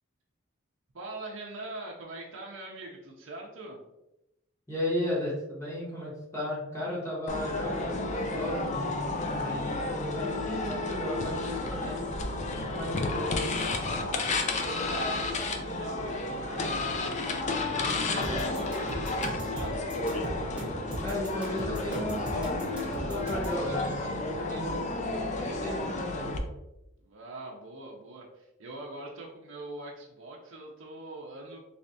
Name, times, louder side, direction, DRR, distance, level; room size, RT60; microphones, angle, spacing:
voice 1, 0.9-3.8 14.3-19.8 27.0-31.6, right 2 dB, 70° right, -2 dB, 0.6 m, -43 dB
voice 2, 4.7-9.0 9.3-12.0 12.5-13.6 21.0-26.3, left 1 dB, 15° left, -7 dB, 1.1 m, -35 dB
sound 1, 7.3-26.4, left 2 dB, 35° left, 0.4 m, -32 dB
sound 2, 18.2-23.6, right 1 dB, 5° right, 0.7 m, -38 dB
3.3 x 3.2 x 2.6 m, 0.91 s
head